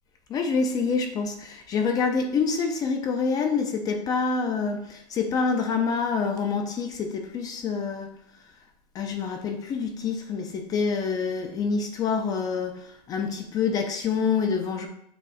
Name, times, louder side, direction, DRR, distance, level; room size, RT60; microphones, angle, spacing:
voice 1, 0.3-8.1 8.9-14.9, left 5 dB, 20° left, 5 dB, 0.4 m, -27 dB
6.9 x 3.0 x 4.8 m, 0.72 s
supercardioid pair, 155°, 21 cm